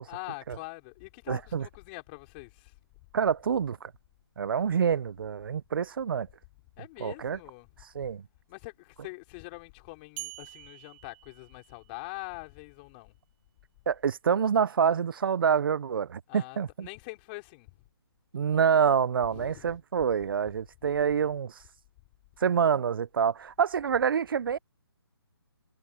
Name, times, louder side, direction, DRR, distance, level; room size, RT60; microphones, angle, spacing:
voice 1, 0.0-2.7 6.8-7.7 8.5-13.1 16.3-17.7 19.2-19.8 20.8-20.9, left 26 dB, 25° left, 4.6 m, -44 dB
voice 2, 1.3-1.7 3.1-3.9 4.4-6.3 7.0-7.4 7.9-8.2 13.9-16.9 18.3-21.5 22.4-24.6, right 7 dB, 55° right, 0.8 m, -27 dB
sound 1, 10.2-12.2, right 23 dB, 20° right, 1.6 m, -46 dB
hypercardioid pair, 155°, 14 cm